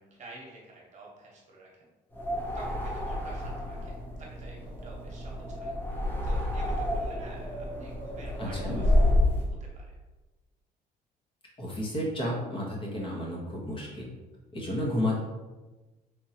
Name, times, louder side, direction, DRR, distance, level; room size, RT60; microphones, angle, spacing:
voice 1, 0.0-1.9 2.5-5.7 6.2-10.0, right 2 dB, 45° right, -3 dB, 1.1 m, -49 dB
sound 1, 2.1-9.4, left 1 dB, 10° left, 0.6 m, -29 dB
voice 2, 8.4-8.8 11.6-14.1 14.5-15.2, left 1 dB, 30° left, -3 dB, 1.0 m, -31 dB
3.5 x 2.9 x 2.8 m, 1.2 s
cardioid pair, 110°, 17 cm